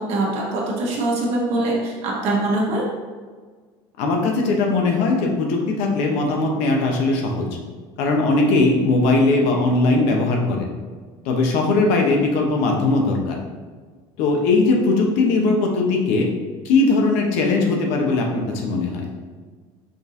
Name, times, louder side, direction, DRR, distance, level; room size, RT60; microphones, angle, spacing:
voice 1, 0.0-2.8, right 2 dB, 60° right, -3 dB, 1.1 m, -23 dB
voice 2, 4.0-7.5 8.0-10.7 11.2-13.4 14.2-16.3 16.6-19.1, left 3 dB, 75° left, 1 dB, 0.8 m, -19 dB
5.2 x 2.7 x 2.5 m, 1.5 s
supercardioid pair, 105°, 12 cm